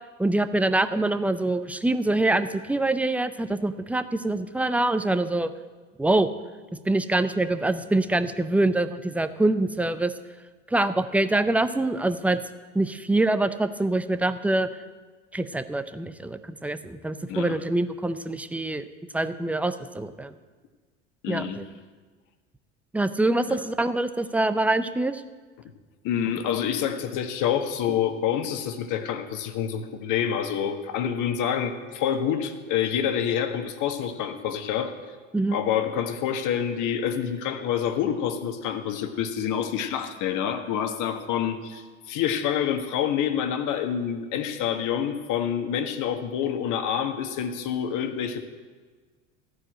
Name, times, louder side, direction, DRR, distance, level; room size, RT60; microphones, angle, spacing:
voice 1, 0.2-5.5 6.0-6.3 6.9-10.1 10.7-12.4 12.7-14.7 15.3-18.9 19.1-20.3 21.3-21.6 22.9-25.2 35.3-35.6, right 2 dB, 5° right, 11 dB, 0.5 m, -25 dB
voice 2, 21.2-21.6 23.5-23.6 26.0-34.9 35.5-48.4, left 9 dB, 50° left, 7 dB, 1.4 m, -27 dB
14.5 x 4.8 x 8.9 m, 1.4 s
hypercardioid pair, 80°, 38 cm